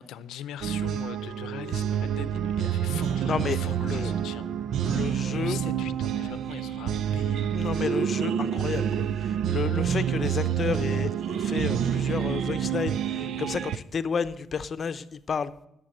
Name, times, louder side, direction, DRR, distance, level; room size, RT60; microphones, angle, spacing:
voice 1, 0.0-4.5 4.8-7.6, left 10 dB, 85° left, 15 dB, 0.6 m, -42 dB
sound 1, 0.6-13.8, right 9 dB, 75° right, 0.4 m, -28 dB
sound 2, 1.2-10.5 10.9-11.0, equal, 15° right, 1.6 m, -51 dB
voice 2, 3.2-4.1 4.9-5.6 7.5-15.5, left 6 dB, 45° left, 12 dB, 0.7 m, -31 dB
11.5 x 6.9 x 7.7 m, 0.78 s
cardioid pair, 90°, 0 cm